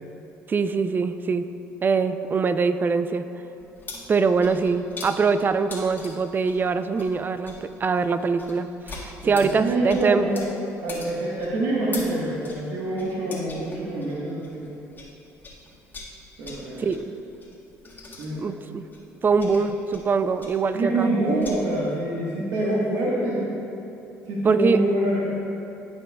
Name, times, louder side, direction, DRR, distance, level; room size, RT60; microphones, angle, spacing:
voice 1, 0.5-1.5 1.8-3.3 4.1-10.3 16.8-17.1 18.4-18.8 19.2-21.1 24.4-24.8, right 5 dB, 35° right, 11 dB, 0.4 m, -23 dB
sound 1, 3.6-15.1 15.4-21.6, left 3 dB, 30° left, 1.6 m, -42 dB
voice 2, 9.2-10.4 10.8-14.8 16.4-16.8 18.2-18.5 20.7-23.5 24.3-25.2, right 1 dB, 75° right, -6 dB, 1.3 m, -26 dB
14.5 x 5.3 x 2.3 m, 2.9 s
supercardioid pair, 75°, 6 cm